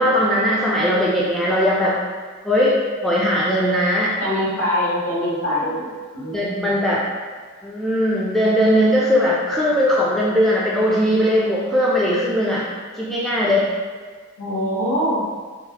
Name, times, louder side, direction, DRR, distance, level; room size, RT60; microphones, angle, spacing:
voice 1, 0.0-2.0 2.4-4.1 6.3-7.0 7.6-12.6 13.0-13.7, equal, ahead, -6 dB, 0.3 m, -19 dB
voice 2, 4.2-5.9 6.1-6.7 14.4-15.2, equal, 65° left, -9 dB, 1.4 m, -23 dB
4.6 x 2.1 x 2.8 m, 1.5 s
head